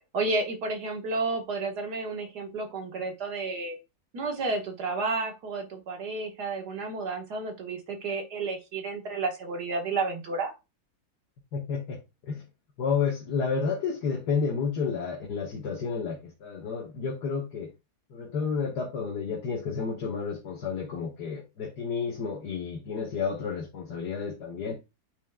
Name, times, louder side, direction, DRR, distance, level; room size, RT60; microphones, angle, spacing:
voice 1, 0.1-3.8 4.1-10.5, right 3 dB, 85° right, 2.0 m, -31 dB
voice 2, 11.5-12.4 12.8-17.7 18.1-24.8, left 5 dB, 85° left, 1.7 m, -31 dB
8.3 x 3.2 x 3.6 m
omnidirectional pair, 1.7 m